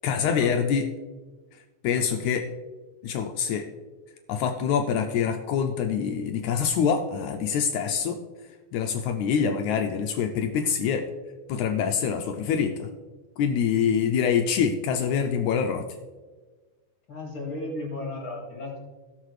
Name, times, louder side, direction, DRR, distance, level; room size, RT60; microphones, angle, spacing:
voice 1, 0.0-0.9 1.8-2.5 3.0-3.7 4.3-8.2 8.7-11.1 11.5-12.9 13.4-15.8, left 7 dB, 80° left, 5 dB, 1.8 m, -25 dB
voice 2, 17.1-18.8, left 2 dB, 35° left, -2 dB, 3.8 m, -34 dB
17.0 x 6.5 x 3.2 m, 1.3 s
omnidirectional pair, 3.7 m